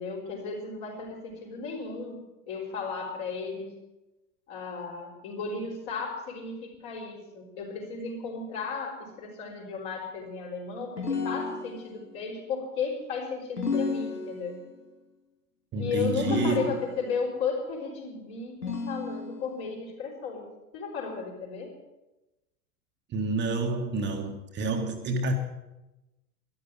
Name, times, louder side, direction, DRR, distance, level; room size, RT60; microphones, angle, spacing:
voice 1, 0.0-3.7 4.5-14.6 15.8-20.5 20.7-21.7, left 5 dB, 45° left, 0 dB, 5.4 m, -34 dB
sound 1, 11.0-12.1 13.6-14.7 16.2-17.2 18.6-19.6, left 4 dB, 85° left, 2.5 m, -32 dB
voice 2, 15.7-16.8 23.1-25.3, right 3 dB, 25° right, 4 dB, 1.4 m, -29 dB
13.0 x 11.5 x 9.3 m, 1.0 s
figure-of-eight pair, 95°, 46 cm